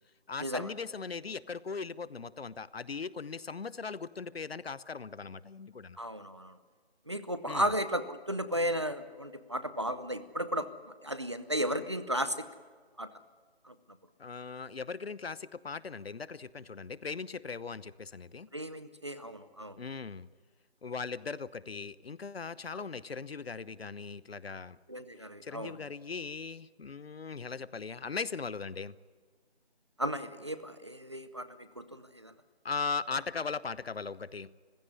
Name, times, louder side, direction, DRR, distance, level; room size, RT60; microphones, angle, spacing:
voice 1, 0.3-6.0 7.5-7.7 14.2-18.5 19.8-20.3 20.8-24.8 25.2-29.0 32.6-34.5, left 5 dB, 70° left, 18 dB, 0.9 m, -39 dB
voice 2, 6.0-6.5 7.1-10.7 11.0-12.5 13.0-13.1 13.6-13.7 18.5-19.8 22.7-22.8 24.9-25.8 30.0-32.3, equal, 25° right, 12 dB, 0.7 m, -34 dB
26.0 x 16.0 x 9.7 m, 1.5 s
figure-of-eight pair, 170°, 32 cm